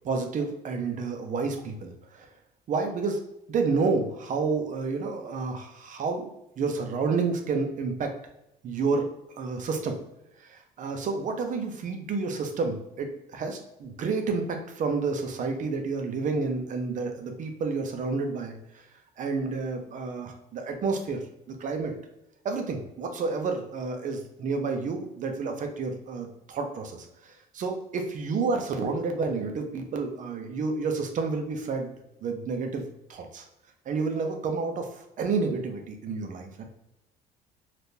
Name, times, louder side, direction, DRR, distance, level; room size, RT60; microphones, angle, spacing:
voice 1, 0.0-2.3 2.7-3.2 3.5-6.3 6.6-8.1 8.6-9.1 9.4-10.0 10.4-18.8 19.2-21.2 21.5-21.9 22.4-31.9 32.2-33.4 33.9-36.6, right 4 dB, 50° right, 4 dB, 0.6 m, -30 dB
3.5 x 2.4 x 2.7 m, 0.86 s
cardioid pair, 110°, 17 cm